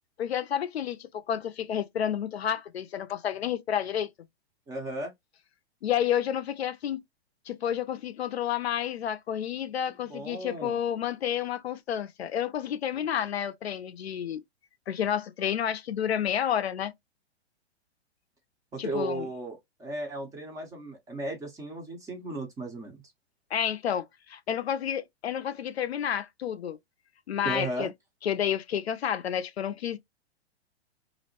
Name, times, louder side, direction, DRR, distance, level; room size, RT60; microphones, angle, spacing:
voice 1, 0.2-4.1 5.8-7.0 7.5-14.4 14.9-16.9 18.8-19.3 23.5-26.8 27.3-27.9 28.2-30.0, left 9 dB, 70° left, 0.5 m, -30 dB
voice 2, 4.7-5.1 10.1-10.8 18.7-23.0 27.4-27.9, right 2 dB, 10° right, 0.5 m, -35 dB
2.5 x 2.0 x 2.9 m
figure-of-eight pair, 105°, 33 cm